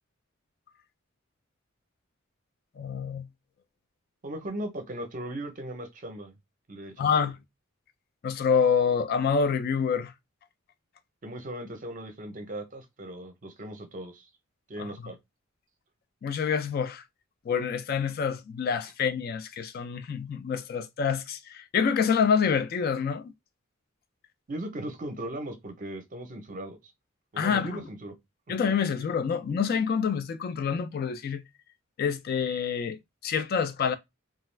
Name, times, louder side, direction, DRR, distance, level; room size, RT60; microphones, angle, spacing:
voice 1, 2.8-3.3 7.0-7.4 8.2-10.1 14.8-14.9 16.2-17.0 17.5-23.3 27.4-27.8 28.5-31.4 32.0-33.9, left 6 dB, 45° left, 0.3 m, -27 dB
voice 2, 4.2-6.4 6.7-7.1 11.2-14.3 14.7-15.2 24.5-26.9 27.3-28.1, right 1 dB, 40° right, 0.6 m, -38 dB
2.3 x 2.3 x 3.2 m
head